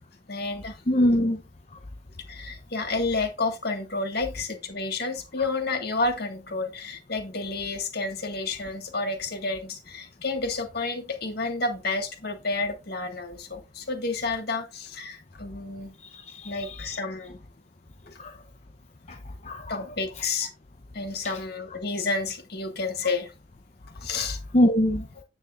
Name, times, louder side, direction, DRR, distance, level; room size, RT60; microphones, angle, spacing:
voice 1, 0.3-0.8 2.3-15.9 16.4-17.4 19.7-20.5 20.9-23.3 24.0-24.4, left 3 dB, 50° left, 1.7 m, -30 dB
voice 2, 0.9-1.4 16.1-16.9 18.2-18.3 19.1-19.2 19.4-19.8 21.2-21.3 24.1-24.3 24.5-25.1, equal, 35° left, 0.7 m, -23 dB
9.7 x 8.5 x 2.5 m
head